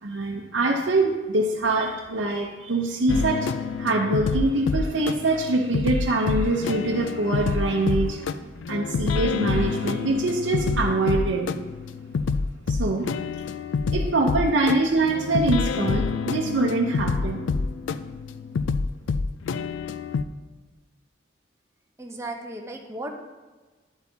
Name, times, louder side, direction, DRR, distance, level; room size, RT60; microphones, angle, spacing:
voice 1, 0.0-3.5 3.8-8.3 8.7-11.5 12.7-13.1 13.9-17.4, right 2 dB, 80° right, -2 dB, 0.7 m, -24 dB
sound 1, 3.1-20.2, left 4 dB, 80° left, 0.4 m, -27 dB
voice 2, 22.0-23.2, right 1 dB, 15° right, 2 dB, 0.8 m, -35 dB
9.9 x 8.0 x 2.8 m, 1.3 s
head